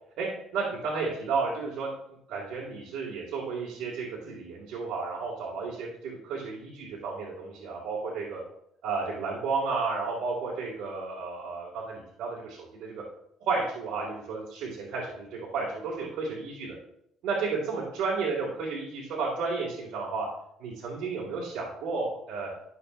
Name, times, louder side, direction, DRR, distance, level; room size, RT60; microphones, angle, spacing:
voice 1, 0.2-1.9 2.3-8.4 8.8-13.0 13.4-16.8 17.2-20.3 20.6-22.5, right 4 dB, 70° right, -4 dB, 2.2 m, -32 dB
12.5 x 6.2 x 2.6 m, 0.74 s
cardioid pair, 140°, 0 cm